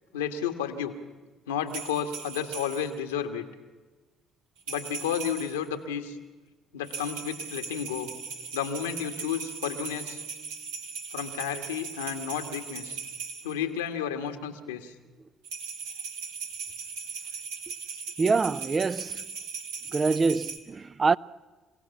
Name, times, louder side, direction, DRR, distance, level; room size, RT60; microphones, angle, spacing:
voice 1, 0.1-0.9 1.5-3.4 4.7-6.2 6.7-8.1 8.5-10.2 11.1-13.0 13.4-14.9, left 8 dB, 90° left, 1.7 m, -32 dB
sound 1, 1.7-3.0 4.6-5.7 6.8-13.5 15.4-20.6, right 5 dB, 85° right, 2.5 m, -38 dB
voice 2, 18.2-19.2 19.9-21.2, right 4 dB, 35° right, 0.6 m, -25 dB
28.0 x 17.0 x 7.2 m
hypercardioid pair, 55°, 0 cm